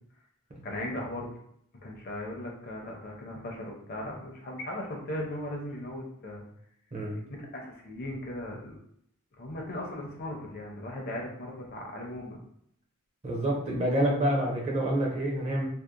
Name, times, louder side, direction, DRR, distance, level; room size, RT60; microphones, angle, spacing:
voice 1, 0.6-1.3 1.7-6.4 7.3-8.8 9.4-12.4, left 1 dB, 45° left, 0 dB, 0.6 m, -37 dB
voice 2, 13.2-15.7, right 1 dB, 30° right, -2 dB, 0.6 m, -27 dB
2.8 x 2.0 x 2.4 m, 0.70 s
head